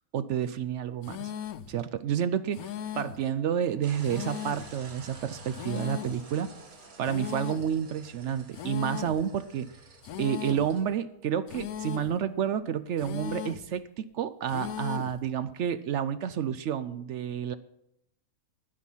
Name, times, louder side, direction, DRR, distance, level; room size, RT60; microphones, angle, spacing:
voice 1, 0.1-1.3 1.7-6.5 7.0-9.7 10.2-17.5, right 9 dB, 65° right, 13 dB, 0.8 m, -30 dB
sound 1, 1.0-1.7 2.5-3.3 4.0-4.8 5.5-6.2 7.0-7.7 8.5-9.2 10.0-10.7 11.5-12.2 13.0-13.7 14.5-15.2, left 10 dB, 85° left, 1.1 m, -37 dB
sound 2, 3.8-10.8, right 3 dB, 80° right, 2.1 m, -50 dB
10.0 x 9.7 x 5.6 m, 0.80 s
omnidirectional pair, 1.5 m